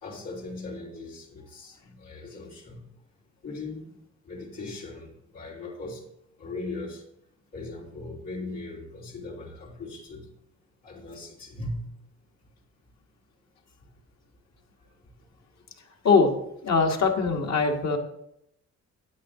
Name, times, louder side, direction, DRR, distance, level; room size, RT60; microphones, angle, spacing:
voice 1, 0.0-2.9 3.4-3.9 4.2-6.0 6.4-7.0 7.5-10.3 10.8-11.8, left 2 dB, 90° left, -7 dB, 3.5 m, -39 dB
voice 2, 16.6-18.0, left 4 dB, 60° left, 2 dB, 1.6 m, -21 dB
9.5 x 8.5 x 3.7 m, 0.77 s
cardioid pair, 90°, 30 cm